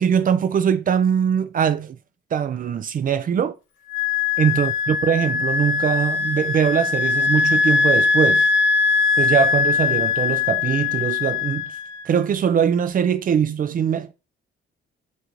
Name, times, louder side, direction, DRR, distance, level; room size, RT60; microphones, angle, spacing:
voice 1, 0.0-2.0 2.3-3.6 4.4-8.5 9.2-11.7 12.0-14.1, right 8 dB, 45° right, 0.5 m, -21 dB
Wind instrument woodwind instrument, 3.9-12.2, left 5 dB, 75° left, 0.6 m, -21 dB
4.7 x 2.7 x 3.0 m
cardioid pair, 90°, 20 cm